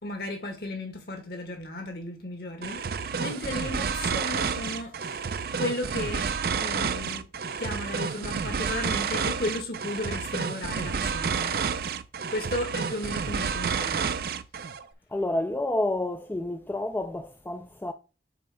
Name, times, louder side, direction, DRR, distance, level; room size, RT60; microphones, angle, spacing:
voice 1, 0.0-2.8 3.2-5.3 5.6-6.3 6.6-7.2 7.6-11.5 12.3-14.1, left 1 dB, 60° left, 1.7 m, -34 dB
sound 1, 2.6-14.8, right 6 dB, 55° right, 0.4 m, -30 dB
voice 2, 15.1-17.9, left 1 dB, 10° left, 0.3 m, -29 dB
6.8 x 3.2 x 4.9 m
head